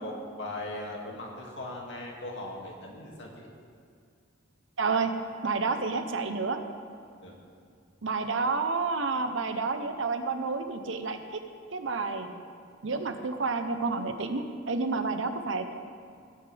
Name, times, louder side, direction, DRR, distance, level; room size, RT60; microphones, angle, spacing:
voice 1, 0.0-3.5 7.2-7.4, left 1 dB, 65° left, -1 dB, 2.4 m, -39 dB
voice 2, 4.8-5.1 5.4-6.6 8.0-11.4 11.7-12.3 12.8-15.7, right 4 dB, 70° right, 7 dB, 0.9 m, -30 dB
19.5 x 9.9 x 3.5 m, 2.3 s
head